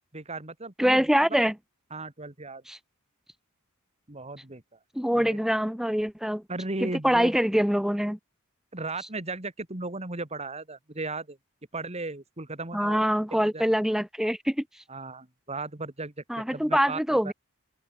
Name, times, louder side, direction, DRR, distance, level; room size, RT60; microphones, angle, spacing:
voice 1, 0.1-1.0 1.9-2.6 4.1-4.6 5.1-5.4 6.5-7.4 8.7-11.4 11.7-13.1 13.3-13.7 14.9-17.3, right 2 dB, 30° right, 2.4 m, -36 dB
voice 2, 0.8-1.5 2.7-2.8 4.9-6.4 6.8-8.2 12.7-14.6 16.3-17.3, equal, ahead, 1.3 m, -24 dB
open air
head